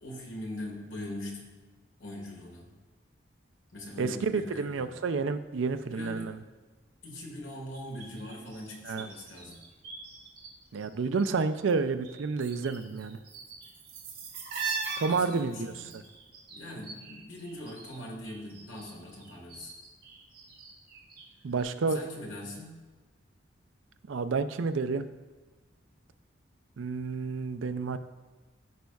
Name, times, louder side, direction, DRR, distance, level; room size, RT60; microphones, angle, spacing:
voice 1, 0.0-1.5 2.0-2.7 3.7-4.9 5.9-6.3 7.0-9.6 12.9-13.0 15.1-16.0 16.5-19.7 21.9-22.8, left 1 dB, 90° left, -1 dB, 1.8 m, -41 dB
voice 2, 4.0-6.4 8.9-9.1 10.7-13.2 15.0-16.0 21.4-22.0 24.1-25.1 26.8-28.0, right 4 dB, 85° right, 11 dB, 0.4 m, -30 dB
sound 1, 7.7-10.5 10.7-11.8 12.0-18.0 18.2-21.3 21.6-21.7, right 5 dB, 45° right, 1.5 m, -41 dB
14.5 x 5.3 x 2.3 m, 1.3 s
head